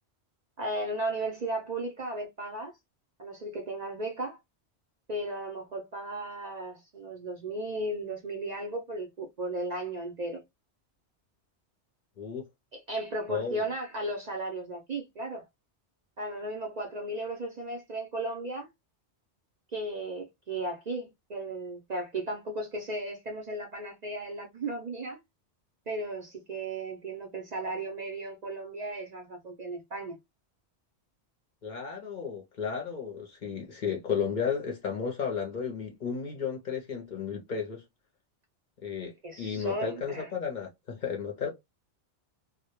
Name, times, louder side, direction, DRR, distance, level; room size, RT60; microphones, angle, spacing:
voice 1, 0.6-2.7 3.2-4.4 5.1-10.4 12.9-15.4 16.2-18.7 19.7-25.2 25.9-30.2 39.2-40.3, right 2 dB, 55° right, 0.5 m, -35 dB
voice 2, 13.3-13.7 31.6-37.8 38.8-41.5, left 6 dB, 55° left, 0.6 m, -33 dB
2.1 x 2.1 x 2.8 m
omnidirectional pair, 1.2 m